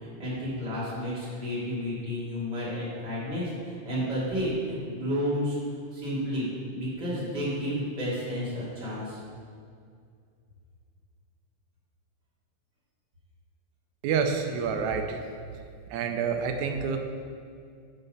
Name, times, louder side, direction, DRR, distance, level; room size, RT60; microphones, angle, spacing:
voice 1, 0.0-5.5 5.9-9.2, equal, 40° right, -8 dB, 2.8 m, -31 dB
voice 2, 14.0-15.2 15.9-17.0, right 6 dB, 80° right, 5 dB, 1.9 m, -28 dB
9.5 x 4.5 x 5.5 m, 2.3 s
omnidirectional pair, 3.3 m